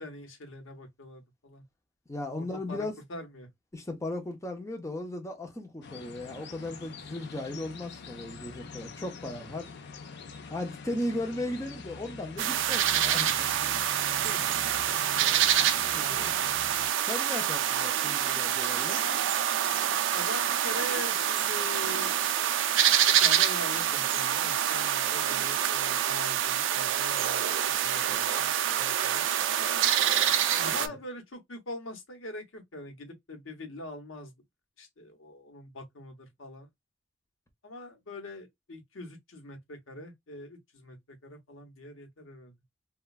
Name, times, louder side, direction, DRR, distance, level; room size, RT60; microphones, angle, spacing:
voice 1, 0.0-1.6 2.4-3.5 14.2-14.7 15.9-16.4 20.1-22.1 23.1-29.2 30.6-34.3 34.8-36.7 37.6-42.5, left 1 dB, 90° left, 0.9 m, -43 dB
voice 2, 2.1-2.9 3.7-9.7 10.5-13.5 15.2-15.5 15.9-16.3 17.0-19.0 30.6-30.9, left 1 dB, 15° left, 0.6 m, -36 dB
sound 1, 5.8-16.9, left 4 dB, 60° left, 0.5 m, -45 dB
sound 2, 12.4-30.9, right 10 dB, 65° right, 0.3 m, -26 dB
3.0 x 2.2 x 2.3 m
head